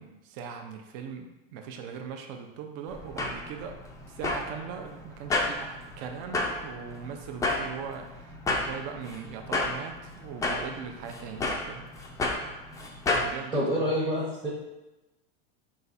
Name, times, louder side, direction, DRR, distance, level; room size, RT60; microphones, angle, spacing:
voice 1, 0.0-3.8 4.1-11.8 13.1-13.9, right 6 dB, 50° right, 4 dB, 0.6 m, -40 dB
sound 1, 2.9-13.3, left 2 dB, 10° left, 0.4 m, -32 dB
voice 2, 13.5-14.5, equal, 10° right, -6 dB, 0.8 m, -27 dB
4.0 x 2.4 x 4.0 m, 1.0 s
supercardioid pair, 120°, 30 cm